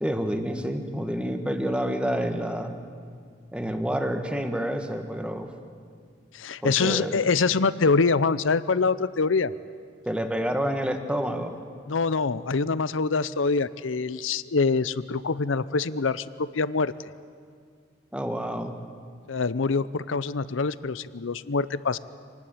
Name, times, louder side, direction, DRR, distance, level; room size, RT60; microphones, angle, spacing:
voice 1, 0.0-2.7 3.5-5.5 6.6-7.2 10.0-11.6 18.1-18.8, equal, 5° right, 6 dB, 1.6 m, -28 dB
voice 2, 6.3-9.5 11.9-16.9 19.3-22.0, left 4 dB, 80° left, 16 dB, 0.7 m, -25 dB
26.5 x 19.5 x 8.9 m, 2.1 s
head